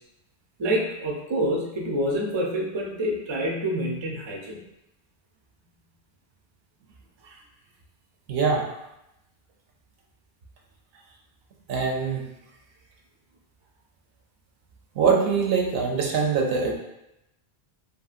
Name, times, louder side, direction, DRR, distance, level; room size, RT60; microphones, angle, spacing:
voice 1, 0.6-4.6 7.2-7.4, equal, 50° right, -1 dB, 0.3 m, -27 dB
voice 2, 8.3-8.6 11.7-12.2 15.0-16.7, right 5 dB, 70° right, 0 dB, 0.8 m, -23 dB
2.9 x 2.7 x 2.4 m, 0.88 s
omnidirectional pair, 1.1 m